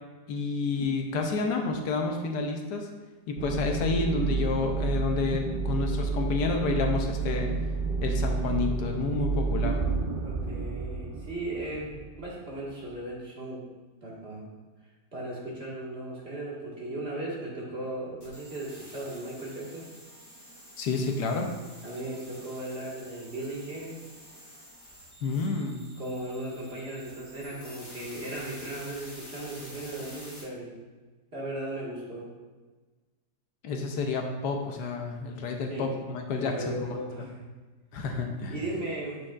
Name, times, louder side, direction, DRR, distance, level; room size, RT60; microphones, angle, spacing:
voice 1, 0.3-2.9 3.3-7.5 8.0-9.8 20.8-21.5 25.2-25.9 33.6-36.8 37.2-37.3 37.9-38.5, left 3 dB, 75° left, 2 dB, 1.3 m, -29 dB
sound 1, 3.4-12.7, right 4 dB, 65° right, 0.5 m, -30 dB
voice 2, 10.2-13.6 14.0-14.5 15.1-19.8 21.8-24.0 26.0-30.7 31.3-32.3 35.7-35.9 36.4-37.4 38.5-39.2, right 1 dB, 40° right, -5 dB, 1.9 m, -37 dB
sound 2, 18.2-30.4, equal, 15° left, 1.6 m, -49 dB
8.8 x 6.2 x 2.4 m, 1.3 s
omnidirectional pair, 1.8 m